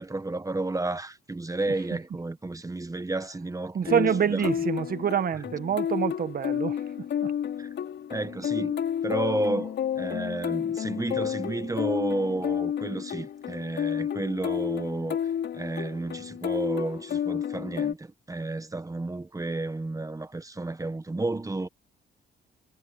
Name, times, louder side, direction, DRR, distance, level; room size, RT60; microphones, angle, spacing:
voice 1, 0.0-4.5 7.6-7.7 8.1-8.8 9.0-15.2 15.5-21.7, right 2 dB, 15° right, 1.4 m, -32 dB
voice 2, 3.7-6.8 7.2-7.3, right 8 dB, 50° right, 1.3 m, -26 dB
sound 1, 3.9-17.9, left 9 dB, 65° left, 6.1 m, -31 dB
cardioid pair, 90°, 20 cm